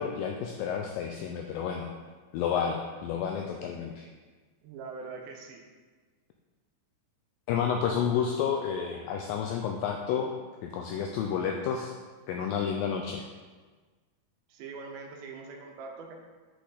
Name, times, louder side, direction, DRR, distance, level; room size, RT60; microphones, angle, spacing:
voice 1, 0.0-1.9 2.3-4.1 7.5-10.3 10.6-11.9 12.3-13.3, left 7 dB, 90° left, 2 dB, 2.0 m, -30 dB
voice 2, 4.6-5.6 14.5-16.2, right 4 dB, 80° right, 2 dB, 2.7 m, -42 dB
7.7 x 6.6 x 3.9 m, 1.4 s
omnidirectional pair, 4.6 m